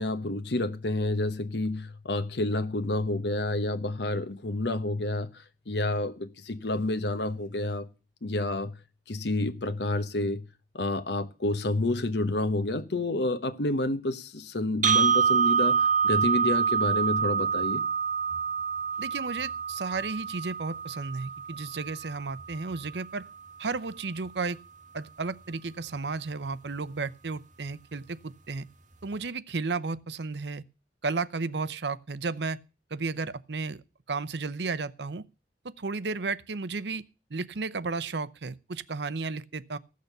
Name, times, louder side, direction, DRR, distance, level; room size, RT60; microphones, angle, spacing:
voice 1, 0.0-7.9 8.2-8.7 9.1-10.4 10.7-15.8 16.0-17.8, left 2 dB, 70° left, 1.0 m, -29 dB
sound 1, 14.8-22.9, right 6 dB, 45° right, 1.2 m, -27 dB
voice 2, 19.0-23.2 23.6-24.6 24.9-28.7 29.0-30.6 31.0-32.6 32.9-33.8 34.1-35.2 35.6-37.0 37.3-39.8, right 4 dB, 70° right, 0.7 m, -33 dB
15.5 x 6.7 x 6.7 m
head